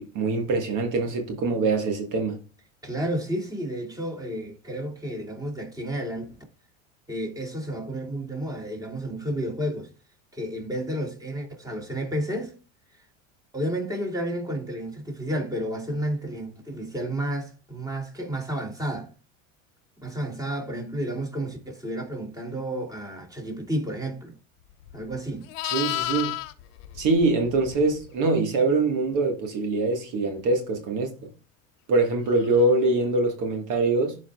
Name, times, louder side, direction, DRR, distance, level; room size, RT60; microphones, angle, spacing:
voice 1, 0.0-2.4 25.6-26.3 26.9-31.3 31.9-34.2, right 3 dB, 50° right, 1.6 m, -24 dB
voice 2, 2.8-6.4 7.1-9.9 10.3-12.5 13.5-19.1 20.0-24.3 24.9-25.5, right 1 dB, 10° right, 2.8 m, -31 dB
Livestock farm animals working animals, 24.8-28.1 32.5-32.7, left 16 dB, 70° left, 0.9 m, -33 dB
11.0 x 5.0 x 2.3 m
hypercardioid pair, 90°, 39 cm